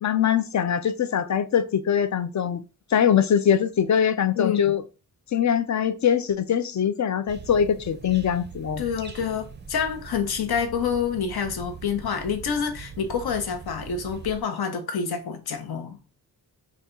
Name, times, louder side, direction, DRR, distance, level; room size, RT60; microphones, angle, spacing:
voice 1, 0.0-2.6 2.9-4.8 5.3-8.8, left 8 dB, 50° left, 0.5 m, -22 dB
voice 2, 4.4-4.7 8.8-16.0, left 7 dB, 75° left, 0.8 m, -27 dB
sound 1, 7.3-14.4, right 5 dB, 30° right, 0.5 m, -42 dB
4.1 x 2.3 x 3.7 m
wide cardioid pair, 110°, 38 cm